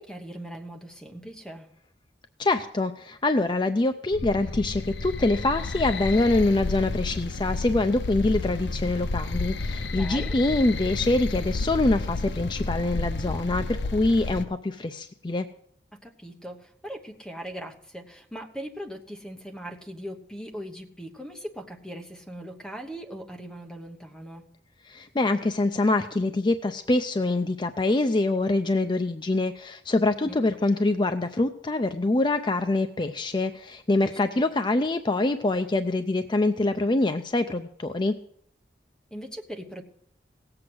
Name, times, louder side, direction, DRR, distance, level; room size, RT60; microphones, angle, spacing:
voice 1, 0.0-1.7 10.0-10.3 15.9-24.4 30.2-30.4 34.0-34.1 39.1-39.8, equal, 5° left, 3 dB, 1.1 m, -40 dB
voice 2, 2.4-15.5 24.9-38.1, left 2 dB, 25° left, 8 dB, 0.5 m, -25 dB
sound 1, 4.1-14.4, left 3 dB, 75° left, 0.7 m, -31 dB
17.5 x 7.8 x 6.2 m, 0.68 s
head